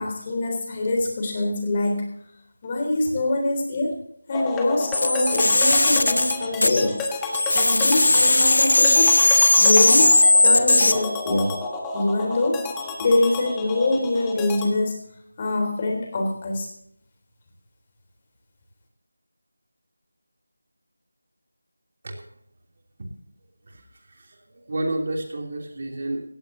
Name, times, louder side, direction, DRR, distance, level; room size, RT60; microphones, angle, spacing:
voice 1, 0.0-2.2 2.6-4.0 4.3-7.0 7.5-11.6 11.9-12.7 13.0-15.1 15.4-16.7, left 2 dB, 25° left, 2 dB, 3.6 m, -24 dB
sound 1, 4.3-14.7, left 3 dB, 10° left, 1.3 m, -31 dB
sound 2, 4.9-7.1 7.3-10.9, left 2 dB, 60° left, 1.2 m, -17 dB
voice 2, 23.7-26.2, right 2 dB, 40° right, 2 dB, 3.1 m, -31 dB
17.5 x 15.5 x 2.8 m, 0.68 s
figure-of-eight pair, 165°, 0 cm